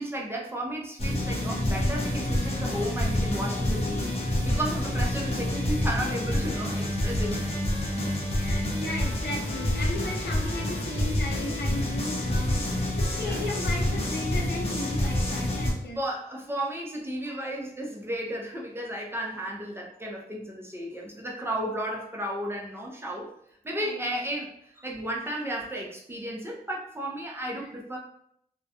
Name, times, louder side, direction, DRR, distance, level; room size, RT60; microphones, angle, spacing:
voice 1, 0.0-7.7 13.2-13.4 16.0-23.3 23.6-28.0, right 1 dB, 15° right, -2 dB, 0.4 m, -33 dB
sound 1, 1.0-15.7, left 1 dB, 40° left, 0.6 m, -28 dB
voice 2, 8.3-16.0 23.8-24.1 27.6-27.7, left 2 dB, 90° left, -1 dB, 0.6 m, -36 dB
2.3 x 2.0 x 2.7 m, 0.69 s
wide cardioid pair, 130°, 16 cm